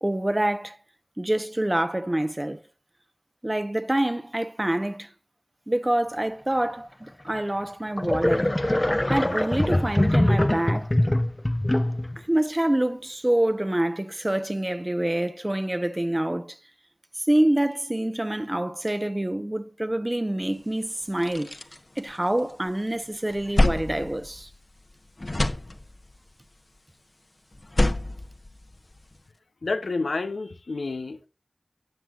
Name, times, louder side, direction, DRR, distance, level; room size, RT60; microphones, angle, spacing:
voice 1, 0.0-0.8 1.2-2.6 3.4-5.1 5.7-8.5 9.1-10.9 12.2-16.6 17.3-21.5 22.0-24.5, right 1 dB, 25° right, 1.0 m, -26 dB
sound 1, 7.3-7.4 8.0-12.2, left 1 dB, 25° left, 0.6 m, -23 dB
sound 2, 20.6-20.7 21.0-22.7 23.1-24.9 25.2-26.2 27.5-29.2, left 1 dB, 45° left, 1.0 m, -27 dB
voice 2, 29.6-31.3, left 3 dB, 90° left, 0.7 m, -29 dB
17.5 x 5.9 x 2.5 m
wide cardioid pair, 45°, 0 cm